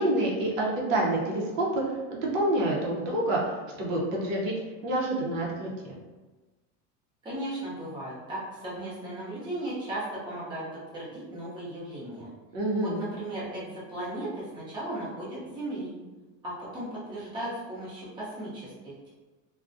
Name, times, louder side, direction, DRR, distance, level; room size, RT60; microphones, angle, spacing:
voice 1, 0.0-4.5 4.8-5.9 12.5-13.1, right 1 dB, 80° right, -3 dB, 0.8 m, -28 dB
voice 2, 7.2-10.6 10.9-12.3 12.8-15.9 16.4-19.1, right 1 dB, 10° right, -9 dB, 0.7 m, -36 dB
2.3 x 2.2 x 2.5 m, 1.2 s
supercardioid pair, 150°, 39 cm